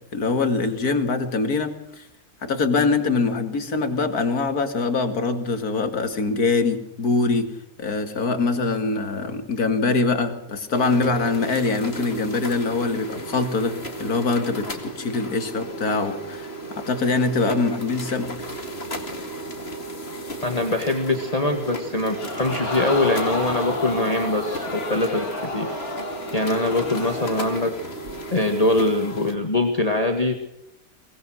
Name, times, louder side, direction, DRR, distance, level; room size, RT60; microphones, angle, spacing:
voice 1, 0.1-2.0 2.4-7.5 7.8-18.3, left 3 dB, 90° left, 7 dB, 2.7 m, -23 dB
sound 1, 10.7-29.4, right 1 dB, 45° left, 2.8 m, -35 dB
voice 2, 20.4-24.6 24.9-25.2 25.5-25.7 26.3-27.7 28.3-30.4, left 2 dB, 25° left, 4 dB, 1.9 m, -22 dB
Crowd, 22.2-27.6 28.1-28.2, left 2 dB, 75° left, 3.7 m, -31 dB
23.5 x 20.0 x 6.3 m, 0.76 s
omnidirectional pair, 1.6 m